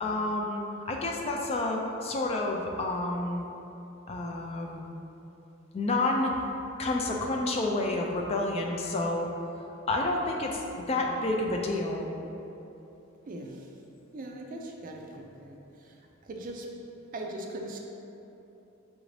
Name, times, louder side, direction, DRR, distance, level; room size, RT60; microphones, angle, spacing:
voice 1, 0.0-3.5 4.1-4.9 5.7-6.4 6.8-9.3 9.9-12.1, left 2 dB, 30° left, 1 dB, 0.3 m, -29 dB
voice 2, 13.3-13.7 14.1-15.6 15.8-15.9 16.2-16.7 17.1-17.8, right 1 dB, 40° right, 1 dB, 0.4 m, -40 dB
5.8 x 2.6 x 3.2 m, 3.0 s
head